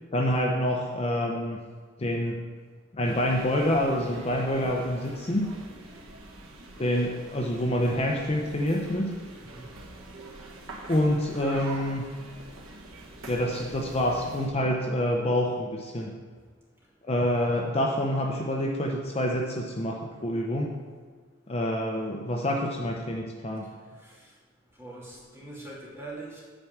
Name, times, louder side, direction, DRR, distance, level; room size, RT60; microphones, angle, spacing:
voice 1, 0.1-1.6 2.0-2.4 2.9-5.5 6.8-9.1 10.9-12.0 13.3-16.1 17.0-20.7 21.5-23.7, left 1 dB, 30° left, 0 dB, 0.7 m, -27 dB
sound 1, 3.0-14.5, right 2 dB, 75° right, 1.4 m, -45 dB
voice 2, 24.8-26.4, right 2 dB, 15° right, -7 dB, 2.7 m, -42 dB
8.8 x 4.7 x 7.2 m, 1.5 s
head